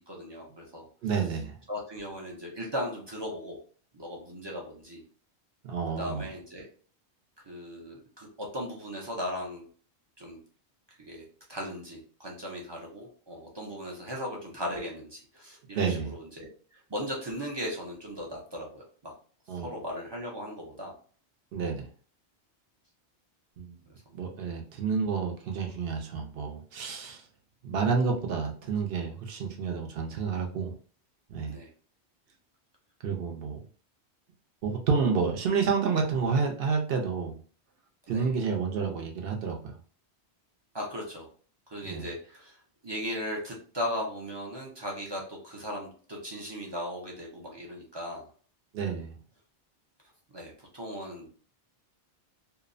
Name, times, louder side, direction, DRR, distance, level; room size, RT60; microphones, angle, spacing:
voice 1, 0.1-0.9 1.7-3.6 3.9-5.0 6.0-6.7 7.4-9.7 10.2-10.4 11.0-16.5 16.9-19.1 19.5-20.9 31.5-31.7 38.1-38.3 40.7-41.3 41.7-42.6 42.8-48.2 50.3-51.3, equal, 35° right, -2 dB, 0.4 m, -37 dB
voice 2, 1.0-1.5 5.6-6.2 15.8-16.1 19.5-19.7 21.5-21.9 23.6-23.8 24.1-27.2 27.6-30.7 31.3-31.6 33.0-33.6 34.6-37.4 38.1-39.7 41.8-42.1 48.7-49.1, right 5 dB, 65° right, 2 dB, 0.8 m, -29 dB
2.7 x 2.0 x 2.4 m, 0.43 s
omnidirectional pair, 1.1 m